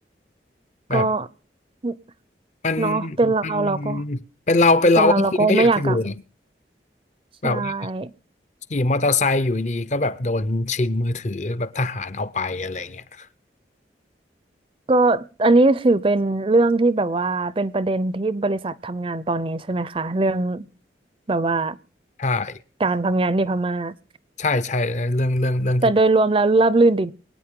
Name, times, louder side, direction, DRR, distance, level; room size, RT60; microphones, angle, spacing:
voice 1, 0.9-1.3 1.8-2.0 2.8-4.0 5.0-6.0 7.4-8.1 14.9-20.7 21.3-21.8 22.8-23.9 25.8-27.1, right 2 dB, 30° right, 0.5 m, -20 dB
voice 2, 2.6-6.1 7.4-7.7 8.7-13.3 22.2-22.6 24.4-25.8, left 2 dB, 40° left, 0.6 m, -22 dB
24.5 x 9.2 x 3.7 m
head